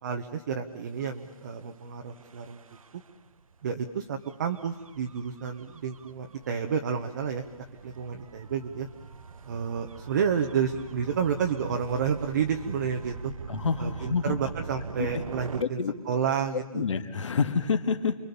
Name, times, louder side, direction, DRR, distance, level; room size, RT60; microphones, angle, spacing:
voice 1, 0.0-2.6 3.6-8.9 9.5-13.3 13.8-15.8 16.1-16.8, right 7 dB, 30° right, 4 dB, 1.1 m, -30 dB
Gull seagull / Waves surf / Siren, 0.9-15.6, right 5 dB, 65° right, 1.2 m, -43 dB
voice 2, 13.5-14.4 15.0-15.2 15.6-15.9 16.5-18.2, left 5 dB, 55° left, 8 dB, 2.0 m, -28 dB
29.0 x 22.0 x 7.0 m, 1.2 s
hypercardioid pair, 170°, 19 cm